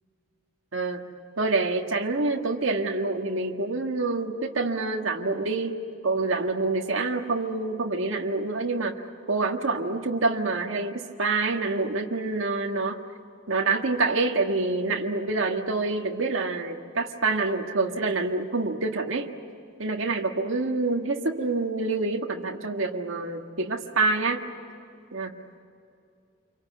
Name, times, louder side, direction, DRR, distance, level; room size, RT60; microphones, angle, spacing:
voice 1, 0.7-1.1 1.4-13.0 13.5-19.3 19.8-24.5 25.1-25.4, right 3 dB, 85° right, 1 dB, 1.7 m, -27 dB
28.0 x 24.5 x 8.5 m, 2.5 s
head